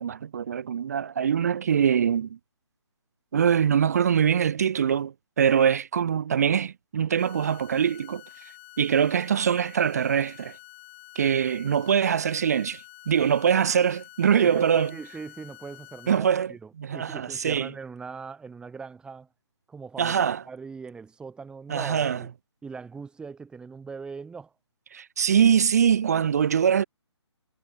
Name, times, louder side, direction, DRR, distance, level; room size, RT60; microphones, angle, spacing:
voice 1, 0.0-2.4 3.3-8.2 8.8-10.6 11.2-14.9 16.1-17.7 20.0-20.4 21.7-22.2 24.9-26.8, right 8 dB, 35° right, 0.4 m, -23 dB
sound 1, 7.2-16.2, left 21 dB, 25° left, 3.2 m, -49 dB
voice 2, 14.3-19.3 19.7-22.3 22.6-24.5, right 5 dB, 5° right, 3.4 m, -40 dB
figure-of-eight pair, 145°, 15 cm